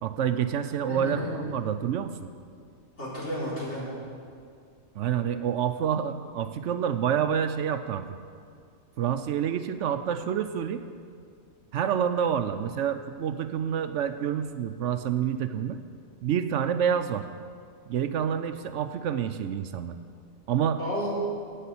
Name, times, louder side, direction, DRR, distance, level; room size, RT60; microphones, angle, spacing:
voice 1, 0.0-2.3 4.9-8.1 9.0-10.8 11.7-15.8 16.2-17.3 17.9-20.0 20.5-20.8, right 8 dB, 70° right, 9 dB, 0.9 m, -28 dB
voice 2, 0.9-1.3 3.0-3.8 20.8-21.1, equal, 60° left, -8 dB, 4.5 m, -32 dB
10.0 x 8.4 x 8.4 m, 2.2 s
omnidirectional pair, 1.3 m